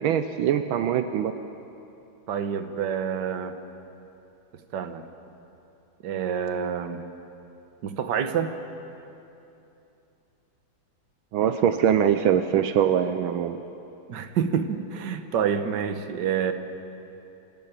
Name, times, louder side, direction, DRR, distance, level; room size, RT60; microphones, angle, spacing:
voice 1, 0.0-1.3 11.3-13.6, right 9 dB, 80° right, 9 dB, 1.5 m, -23 dB
voice 2, 2.3-3.6 4.7-5.1 6.0-7.0 7.8-8.6 14.1-16.5, right 7 dB, 60° right, 8 dB, 1.7 m, -27 dB
26.5 x 14.5 x 9.1 m, 2.9 s
omnidirectional pair, 2.2 m